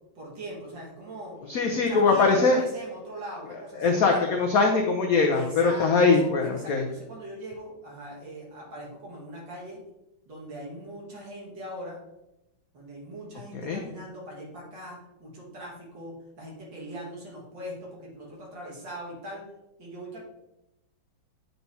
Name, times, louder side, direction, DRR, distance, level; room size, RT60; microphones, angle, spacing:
voice 1, 0.2-1.4 1.7-4.3 5.3-9.8 10.3-12.0 12.7-19.4 19.8-20.2, equal, 60° right, -4 dB, 2.4 m, -41 dB
voice 2, 1.5-2.6 3.8-6.8 13.6-13.8, left 4 dB, 75° left, 2 dB, 0.8 m, -22 dB
8.0 x 4.5 x 2.7 m, 0.90 s
omnidirectional pair, 2.2 m